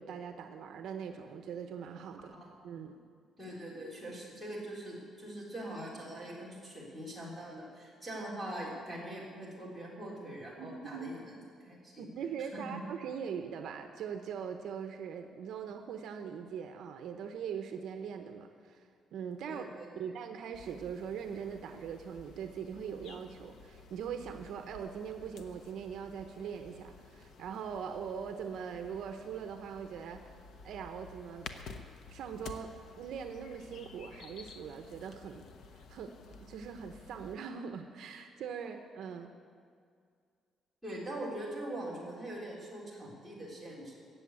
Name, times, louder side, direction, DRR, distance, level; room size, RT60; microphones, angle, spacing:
voice 1, 0.0-2.3 2.6-2.9 10.6-11.1 12.0-19.6 20.0-30.3 30.6-31.5 32.1-35.5 35.7-39.3, right 7 dB, 65° right, 6 dB, 0.8 m, -41 dB
voice 2, 3.4-11.4 11.6-12.1 12.5-12.8 19.5-19.9 40.8-44.0, right 1 dB, ahead, -5 dB, 3.4 m, -42 dB
sound 1, 20.5-37.4, left 4 dB, 60° left, 0.9 m, -52 dB
16.0 x 7.1 x 8.3 m, 2.2 s
cardioid pair, 170°, 0 cm